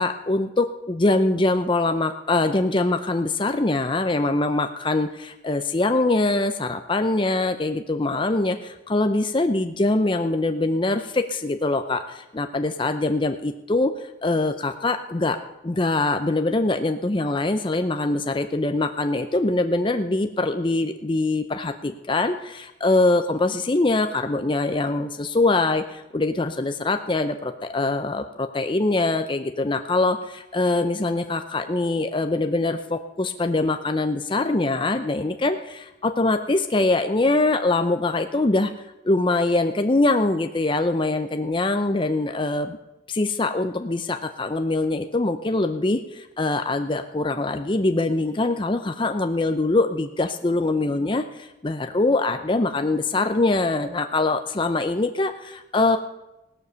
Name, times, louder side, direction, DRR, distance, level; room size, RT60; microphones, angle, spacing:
voice 1, 0.0-13.9 14.2-15.4 15.6-38.7 39.0-42.8 43.1-56.0, left 2 dB, 25° left, 8 dB, 0.6 m, -23 dB
16.5 x 12.0 x 6.8 m, 0.98 s
head